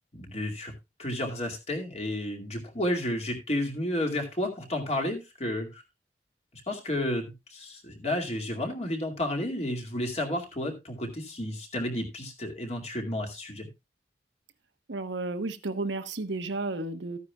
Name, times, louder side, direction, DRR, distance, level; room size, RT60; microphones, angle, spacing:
voice 1, 0.1-0.7 1.0-5.8 6.7-13.7, left 1 dB, 35° left, 2.3 m, -31 dB
voice 2, 14.9-17.2, right 2 dB, 90° right, 1.1 m, -32 dB
13.5 x 9.6 x 2.3 m
head